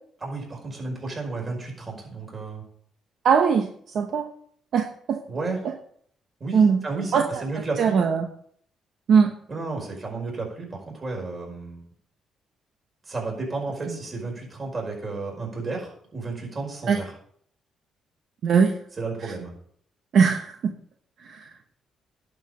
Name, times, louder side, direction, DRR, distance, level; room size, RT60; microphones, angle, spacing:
voice 1, 0.2-2.6 5.3-5.6 6.4-8.0 9.5-11.8 13.1-17.1 19.0-19.5, right 3 dB, 35° right, 0 dB, 5.2 m, -32 dB
voice 2, 3.2-4.3 4.7-5.2 6.5-6.8 7.1-8.3 9.1-9.3 13.9-14.0 16.9-17.0 18.4-18.8 19.2-19.3 20.1-20.7 21.2-21.5, right 6 dB, 65° right, 5 dB, 1.0 m, -21 dB
11.0 x 5.6 x 6.9 m, 0.62 s
cardioid pair, 90°, 0 cm